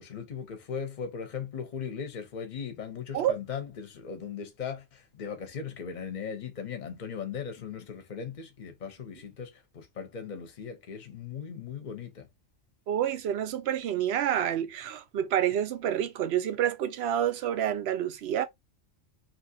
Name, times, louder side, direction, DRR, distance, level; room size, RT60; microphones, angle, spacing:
voice 1, 0.0-12.3, left 7 dB, 40° left, 0.8 m, -38 dB
voice 2, 12.9-18.4, right 10 dB, 65° right, 0.7 m, -28 dB
2.8 x 2.6 x 2.7 m
omnidirectional pair, 1.3 m